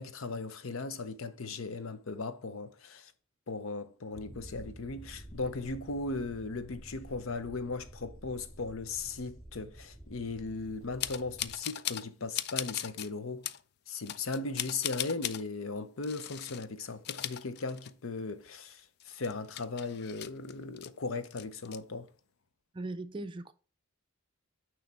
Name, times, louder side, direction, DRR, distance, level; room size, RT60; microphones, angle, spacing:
voice 1, 0.0-3.1 3.5-13.5 13.9-22.1, left 3 dB, 80° left, 0.7 m, -37 dB
sound 1, 4.1-11.6, equal, 5° left, 1.9 m, -50 dB
sound 2, 11.0-12.1 12.3-13.1 13.4-13.6 14.1-15.4 16.0-16.6 16.9-18.1 18.5-18.6 19.0-20.9 21.2-21.8, left 12 dB, 50° left, 0.3 m, -38 dB
voice 2, 22.7-23.5, right 2 dB, 25° right, 0.4 m, -39 dB
9.3 x 3.2 x 4.1 m
head